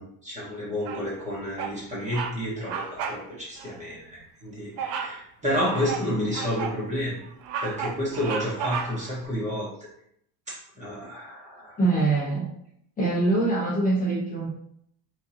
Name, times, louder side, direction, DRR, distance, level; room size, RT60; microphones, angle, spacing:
voice 1, 0.0-7.2 7.6-9.9 10.5-11.8, equal, 15° right, -7 dB, 1.4 m, -30 dB
Bird vocalization bird call bird song, 0.8-1.2 1.6-1.8 2.1-2.4 2.6-3.2 3.6-3.7 4.8-5.2 5.7-6.8 7.2-9.2, right 6 dB, 65° right, 0.7 m, -33 dB
voice 2, 11.8-12.4 13.0-14.5, right 2 dB, 20° left, -7 dB, 1.0 m, -23 dB
4.4 x 3.8 x 2.9 m, 0.71 s
cardioid pair, 175°, 43 cm